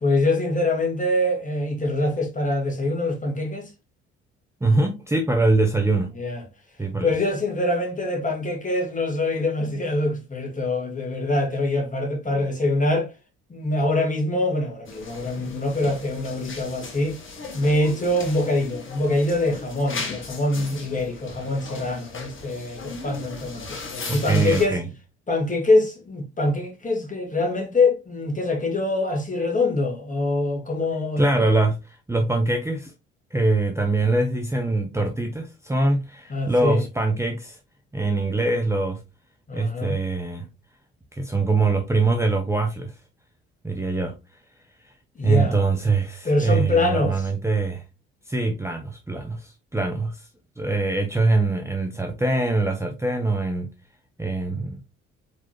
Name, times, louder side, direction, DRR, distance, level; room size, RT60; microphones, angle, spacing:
voice 1, 0.0-3.7 6.2-6.4 7.0-13.1 13.5-17.2 17.5-23.8 24.1-24.8 25.3-31.2 36.3-36.8 39.5-40.0 45.2-45.6 46.2-47.3, left 2 dB, 25° left, 2.0 m, -24 dB
voice 2, 4.6-6.1 6.8-7.1 24.1-24.9 31.2-32.9 33.3-37.6 37.9-39.0 39.5-40.5 41.1-43.0 43.6-44.1 44.8-44.9 45.2-47.8 48.3-50.3 50.6-53.7 54.2-54.8, right 3 dB, 10° right, 0.8 m, -23 dB
sound 1, 14.9-24.7, left 3 dB, 40° left, 1.6 m, -37 dB
4.5 x 4.0 x 2.9 m
hypercardioid pair, 50°, 31 cm